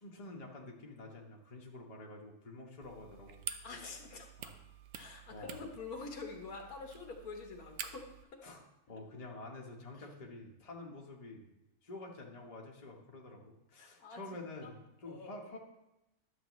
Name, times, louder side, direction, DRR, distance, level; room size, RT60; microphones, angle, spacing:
voice 1, 0.0-3.5 4.4-4.6 5.3-5.7 8.4-8.6 8.9-11.4 11.8-15.6, left 2 dB, 30° left, -1 dB, 1.0 m, -48 dB
sound 1, 2.8-8.2, right 9 dB, 70° right, 0.9 m, -48 dB
voice 2, 3.6-4.5 4.9-8.0 8.3-8.4 13.8-14.2 14.6-14.7 15.0-15.4, left 4 dB, 75° left, 3 dB, 1.6 m, -46 dB
11.0 x 7.3 x 3.1 m, 0.91 s
omnidirectional pair, 1.6 m